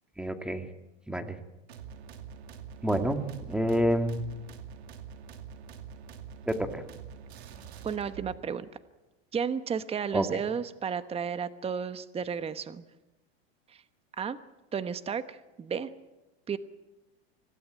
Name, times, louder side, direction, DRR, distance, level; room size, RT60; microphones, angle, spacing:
voice 1, 0.2-0.7 1.1-1.4 2.8-4.2 6.5-6.8 10.1-10.2, equal, 5° right, 6 dB, 2.1 m, -28 dB
sound 1, 1.7-8.4, right 7 dB, 85° right, 2.5 m, -45 dB
voice 2, 7.8-8.7 9.3-12.8 13.7-13.8 14.2-14.4 14.7-15.9 16.5-16.6, right 6 dB, 20° right, 12 dB, 1.0 m, -33 dB
25.5 x 16.5 x 9.2 m, 1.1 s
supercardioid pair, 115°, 31 cm